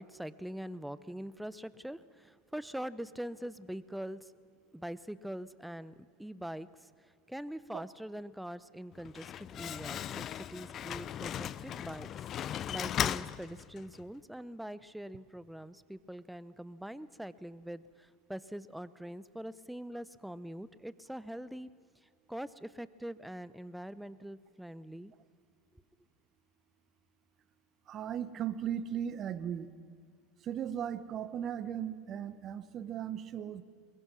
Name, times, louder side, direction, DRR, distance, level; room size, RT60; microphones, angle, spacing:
voice 1, 0.0-4.3 4.7-6.9 7.3-12.1 12.4-21.7 22.3-25.1, equal, 5° right, 17 dB, 0.8 m, -43 dB
Slam, 8.9-14.0, left 10 dB, 40° left, 0.6 m, -37 dB
voice 2, 27.9-29.7 30.4-33.6, right 9 dB, 40° right, 14 dB, 1.3 m, -37 dB
22.5 x 22.0 x 6.2 m, 2.3 s
hypercardioid pair, 85°, 0 cm